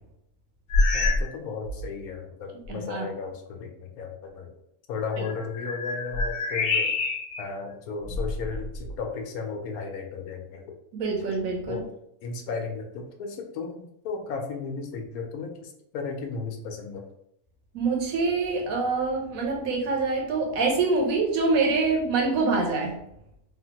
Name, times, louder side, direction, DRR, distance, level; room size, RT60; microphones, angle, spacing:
sound 1, 0.7-1.3 1.6-2.0 2.6-2.7 5.1-7.5 8.0-9.0, left 3 dB, 65° left, 0.5 m, -27 dB
voice 1, 0.9-4.5 4.9-6.9 7.4-10.7 11.7-11.9 12.2-17.0, left 4 dB, 80° left, 3 dB, 1.1 m, -35 dB
voice 2, 2.7-3.1 10.9-11.8 17.7-23.0, right 3 dB, 75° right, 0 dB, 1.2 m, -25 dB
3.4 x 2.0 x 2.8 m, 0.76 s
omnidirectional pair, 1.5 m